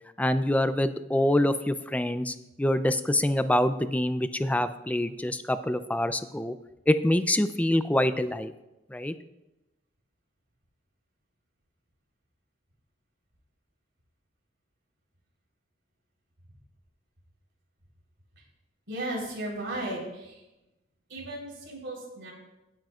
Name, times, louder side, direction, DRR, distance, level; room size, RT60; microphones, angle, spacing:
voice 1, 0.2-6.5 6.9-8.5 8.9-9.1, left 1 dB, 10° left, 11 dB, 0.4 m, -25 dB
voice 2, 18.9-20.4 21.1-22.3, right 1 dB, 70° right, -2 dB, 3.8 m, -35 dB
16.5 x 9.2 x 2.4 m, 0.96 s
head